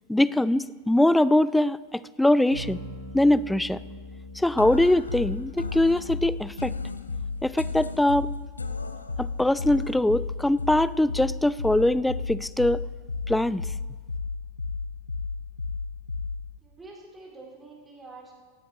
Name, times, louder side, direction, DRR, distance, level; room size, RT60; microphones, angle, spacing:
voice 1, 0.1-2.8 3.1-3.8 4.4-6.7 7.4-8.3 9.2-12.9 13.3-13.6, left 1 dB, 5° left, 19 dB, 0.3 m, -22 dB
sound 1, 2.5-12.5, equal, 85° right, 1.7 m, -45 dB
sound 2, 4.6-16.6, left 4 dB, 80° left, 0.7 m, -33 dB
voice 2, 16.6-18.3, right 3 dB, 15° right, -4 dB, 5.3 m, -46 dB
17.5 x 16.5 x 3.1 m, 1.5 s
figure-of-eight pair, 90°, 0 cm